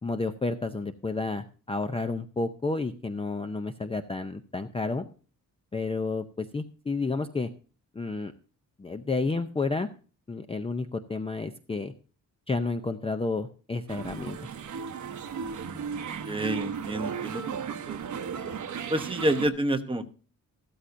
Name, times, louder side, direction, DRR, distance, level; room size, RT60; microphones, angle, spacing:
voice 1, 0.0-5.0 5.7-7.5 7.9-8.3 8.8-9.9 10.3-11.9 12.5-14.4, left 3 dB, 15° left, 8 dB, 0.5 m, -31 dB
sound 1, 13.9-19.5, right 6 dB, 55° right, 1.0 m, -35 dB
voice 2, 16.3-17.6 17.9-18.3 18.9-20.1, right 1 dB, 15° right, 6 dB, 0.9 m, -29 dB
14.5 x 12.5 x 2.6 m, 0.38 s
wide cardioid pair, 165°, 34 cm